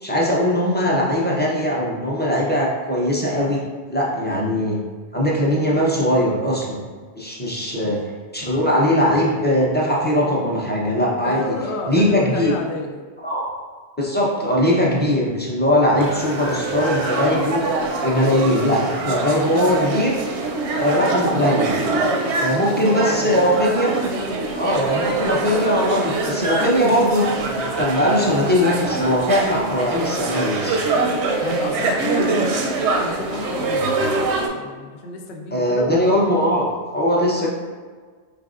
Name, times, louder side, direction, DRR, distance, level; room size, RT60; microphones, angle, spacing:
voice 1, 0.0-3.6 3.9-4.8 5.1-6.8 7.1-8.0 8.3-11.4 11.9-12.5 13.2-13.5 14.0-17.6 18.0-20.2 20.7-21.8 22.3-23.9 24.5-27.3 27.8-30.8 35.5-36.7 36.9-37.5, equal, 15° left, -5 dB, 0.5 m, -20 dB
voice 2, 11.2-13.0 22.7-22.8 23.1-23.3 31.4-33.9 34.5-35.9, left 2 dB, 80° left, 2 dB, 0.8 m, -30 dB
sound 1, 16.0-34.5, right 2 dB, 85° right, 0.9 m, -24 dB
4.6 x 3.3 x 2.4 m, 1.5 s
omnidirectional pair, 1.1 m